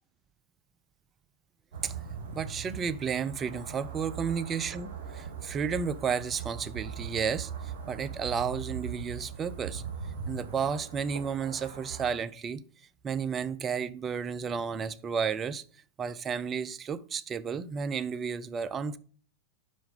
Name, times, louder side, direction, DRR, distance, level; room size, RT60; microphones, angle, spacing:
sound 1, 1.7-12.1, right 6 dB, 50° right, 1.7 m, -40 dB
voice 1, 2.3-9.8 10.3-12.6 13.0-15.6 16.0-19.0, right 6 dB, 25° right, 0.4 m, -32 dB
5.8 x 5.1 x 5.4 m
figure-of-eight pair, 90°, 0 cm